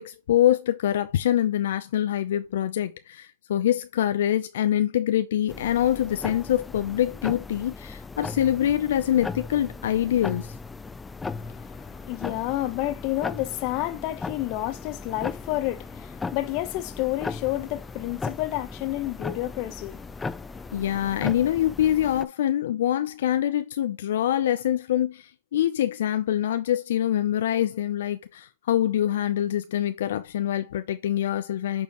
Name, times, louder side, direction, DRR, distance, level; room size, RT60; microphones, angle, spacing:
voice 1, 0.0-10.5 20.7-31.8, left 11 dB, 70° left, 0.5 m, -25 dB
sound 1, 5.5-22.2, left 4 dB, 10° left, 0.4 m, -37 dB
voice 2, 11.4-20.8, left 16 dB, 45° left, 0.9 m, -30 dB
8.5 x 4.6 x 3.0 m
hypercardioid pair, 135°, 0 cm